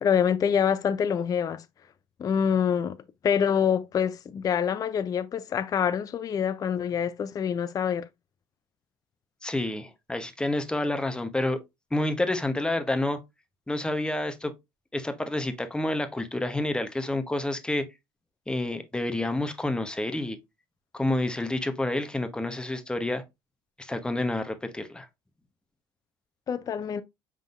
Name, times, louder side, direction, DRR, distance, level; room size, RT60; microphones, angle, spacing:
voice 1, 0.0-1.6 2.2-3.0 3.2-8.1 26.5-27.0, left 7 dB, 35° left, 0.4 m, -26 dB
voice 2, 9.4-11.6 11.9-13.2 13.7-14.5 14.9-17.8 18.5-20.4 20.9-23.2 23.8-25.1, left 1 dB, 10° left, 0.8 m, -29 dB
5.1 x 3.8 x 2.4 m
supercardioid pair, 85°, 11 cm